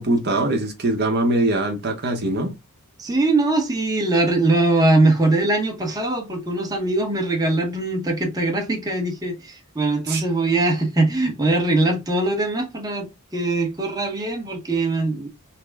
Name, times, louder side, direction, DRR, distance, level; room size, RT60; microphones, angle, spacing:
voice 1, 0.0-2.5 10.1-10.2, right 2 dB, 50° right, 0.8 m, -22 dB
voice 2, 3.0-13.1 13.3-15.3, right 2 dB, 15° right, 0.9 m, -21 dB
5.8 x 2.0 x 3.4 m
head